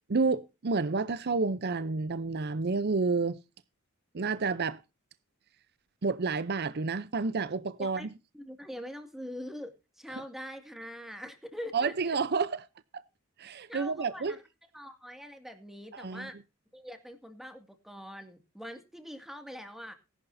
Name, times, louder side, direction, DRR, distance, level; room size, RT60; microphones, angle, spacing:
voice 1, 0.1-3.4 4.1-4.8 6.0-8.1 11.7-12.6 13.4-14.4 15.9-16.3, right 4 dB, 50° right, 0.6 m, -30 dB
voice 2, 8.3-12.2 13.7-14.4 14.7-16.4 16.7-19.9, equal, ahead, 2.1 m, -43 dB
19.0 x 11.0 x 2.7 m
head